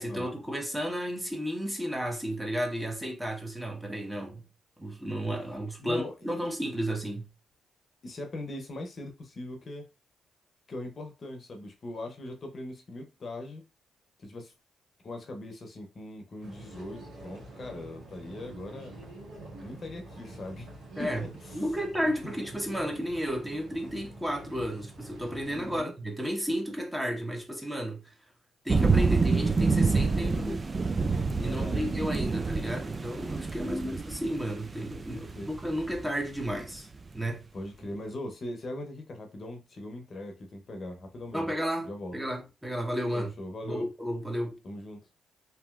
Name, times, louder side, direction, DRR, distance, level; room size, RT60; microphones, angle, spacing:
voice 1, 0.0-4.4 4.8-7.3 21.0-21.2 21.5-28.1 28.6-30.9 31.4-36.9 37.1-37.4 41.3-43.3 43.6-44.6, equal, 10° right, 1.1 m, -33 dB
voice 2, 5.8-6.4 8.0-9.9 10.7-13.6 14.2-14.5 15.0-19.0 19.6-20.7 21.0-21.6 22.0-22.3 25.4-25.9 30.1-30.7 31.3-31.9 33.6-34.0 35.1-35.5 37.5-41.5 41.8-42.2 43.1-43.9 44.6-45.0, left 1 dB, 50° left, 0.7 m, -40 dB
sound 1, 16.4-25.8, right 2 dB, 75° right, 1.2 m, -47 dB
sound 2, 28.7-36.9, right 4 dB, 35° right, 0.3 m, -27 dB
2.9 x 2.7 x 2.3 m
supercardioid pair, 55°, 0 cm